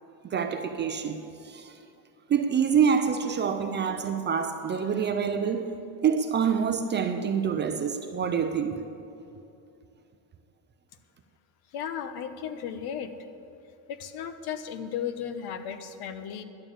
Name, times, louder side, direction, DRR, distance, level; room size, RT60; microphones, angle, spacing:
voice 1, 0.2-1.7 2.3-5.7 6.0-8.8, right 7 dB, 25° right, 0.4 m, -26 dB
voice 2, 11.7-13.1 13.9-16.4, left 8 dB, 65° left, 1.0 m, -35 dB
11.5 x 9.0 x 8.8 m
cardioid pair, 170°, 42 cm